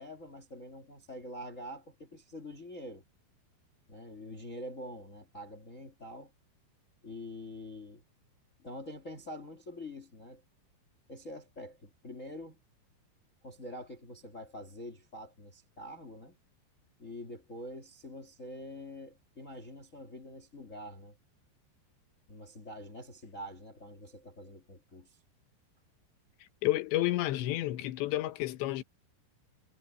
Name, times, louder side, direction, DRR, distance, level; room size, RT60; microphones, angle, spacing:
voice 1, 0.0-3.0 3.9-6.3 7.0-8.0 8.6-10.4 11.1-12.6 13.4-16.4 17.0-21.2 22.3-25.2, left 1 dB, 50° left, 0.9 m, -45 dB
voice 2, 26.6-28.8, left 16 dB, 75° left, 3.2 m, -30 dB
omnidirectional pair, 5.3 m